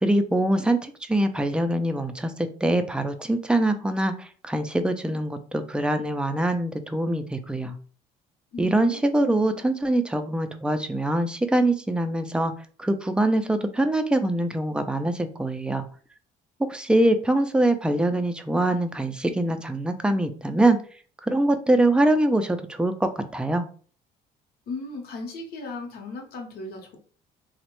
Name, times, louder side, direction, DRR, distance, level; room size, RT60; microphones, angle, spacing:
voice 1, 0.0-7.7 8.6-12.5 12.8-15.9 16.7-20.8 21.2-23.7, right 1 dB, 5° right, 8 dB, 0.3 m, -23 dB
voice 2, 8.5-9.6 24.7-27.0, left 3 dB, 65° left, 1 dB, 0.8 m, -36 dB
3.0 x 2.1 x 2.9 m, 0.42 s
cardioid pair, 110°, 17 cm